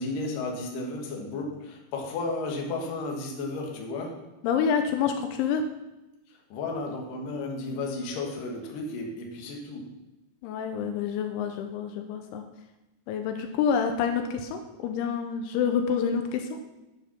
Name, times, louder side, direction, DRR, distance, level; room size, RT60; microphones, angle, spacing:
voice 1, 0.0-4.2 6.3-9.9, left 3 dB, 60° left, 0 dB, 2.7 m, -33 dB
voice 2, 4.4-5.6 10.4-12.4 13.1-16.6, left 7 dB, 85° left, 5 dB, 3.0 m, -27 dB
9.1 x 7.4 x 5.8 m, 0.99 s
omnidirectional pair, 5.5 m